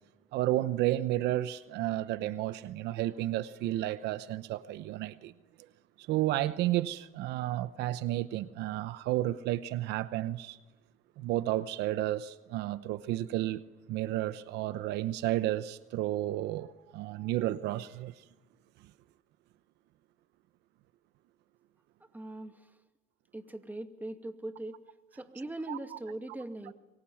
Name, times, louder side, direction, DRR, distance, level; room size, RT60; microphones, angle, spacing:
voice 1, 0.3-5.3 6.0-10.6 11.2-13.6 13.9-18.1 25.7-25.8, right 14 dB, 85° right, 0.9 m, -32 dB
voice 2, 22.1-22.7 23.3-24.8 25.1-26.7, right 1 dB, 10° right, 2.3 m, -40 dB
27.5 x 23.0 x 7.3 m
cardioid pair, 110°, 17 cm